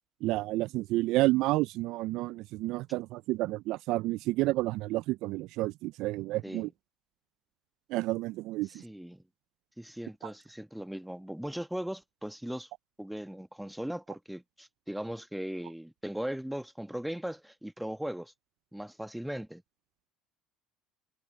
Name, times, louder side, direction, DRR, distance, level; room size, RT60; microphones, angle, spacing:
voice 1, 0.2-6.7 7.9-8.8 10.2-10.3, right 19 dB, 65° right, 0.5 m, -30 dB
voice 2, 8.7-9.2 9.8-12.7 13.0-18.3 18.7-19.6, equal, 5° right, 1.4 m, -38 dB
hypercardioid pair, 65°, 0 cm